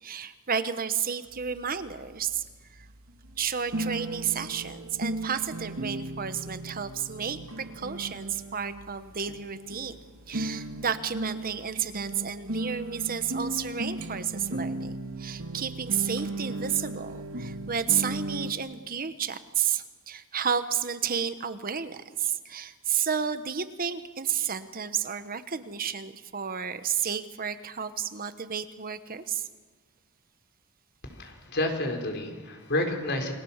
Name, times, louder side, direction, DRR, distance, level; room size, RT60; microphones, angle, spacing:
voice 1, 0.0-2.4 2.7-2.9 3.4-10.0 10.3-29.5, right 7 dB, 40° right, 11 dB, 1.2 m, -31 dB
sound 1, 1.3-18.5, right 1 dB, 70° right, 1.9 m, -36 dB
voice 2, 31.0-33.3, left 1 dB, 50° left, 4 dB, 4.6 m, -30 dB
29.0 x 22.5 x 7.3 m, 1.4 s
head